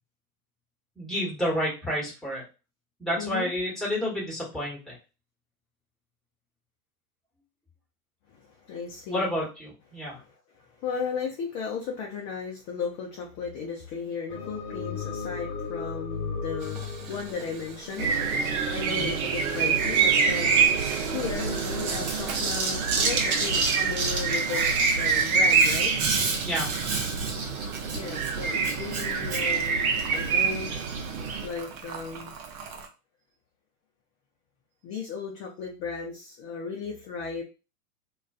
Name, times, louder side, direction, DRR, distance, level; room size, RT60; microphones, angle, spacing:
voice 1, 1.0-2.4 3.0-4.9 9.1-10.2 18.8-19.1 26.4-26.7, equal, ahead, -5 dB, 1.1 m, -30 dB
voice 2, 3.2-3.5 8.3-9.3 10.1-18.1 18.4-20.7 21.1-25.9 27.9-30.8 31.4-32.3 34.8-37.4, left 5 dB, 30° left, -1 dB, 0.4 m, -35 dB
sound 1, 14.3-18.7, left 5 dB, 60° left, 0.8 m, -35 dB
Boiling, 16.6-32.9, right 5 dB, 30° right, 0.5 m, -37 dB
sound 2, 18.0-31.5, right 5 dB, 70° right, 0.7 m, -25 dB
2.4 x 2.3 x 2.3 m, 0.31 s
hypercardioid pair, 100°, 44 cm